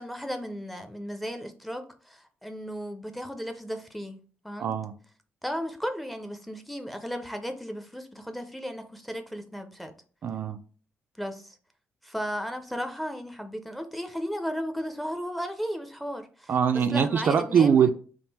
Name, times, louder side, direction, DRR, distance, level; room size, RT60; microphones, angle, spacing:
voice 1, 0.0-4.2 4.4-4.8 5.4-9.9 11.2-11.6 12.0-16.5 16.9-17.9, equal, ahead, 0.5 m, -35 dB
voice 2, 4.6-5.0 10.2-10.6 16.5-17.9, right 7 dB, 55° right, 0.4 m, -22 dB
3.6 x 2.5 x 4.1 m
cardioid pair, 115°, 4 cm